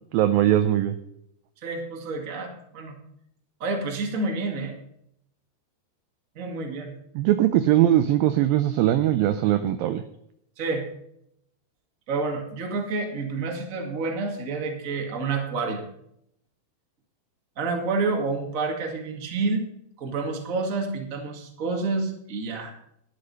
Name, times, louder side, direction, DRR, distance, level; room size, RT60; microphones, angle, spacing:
voice 1, 0.1-1.0 7.2-10.0, right 12 dB, 85° right, 10 dB, 2.1 m, -20 dB
voice 2, 1.6-3.0 3.6-4.7 6.3-6.9 10.6-10.8 12.1-15.8 17.6-19.7 20.0-22.7, right 3 dB, 35° right, 2 dB, 1.3 m, -29 dB
11.5 x 9.6 x 5.5 m, 0.73 s
omnidirectional pair, 4.8 m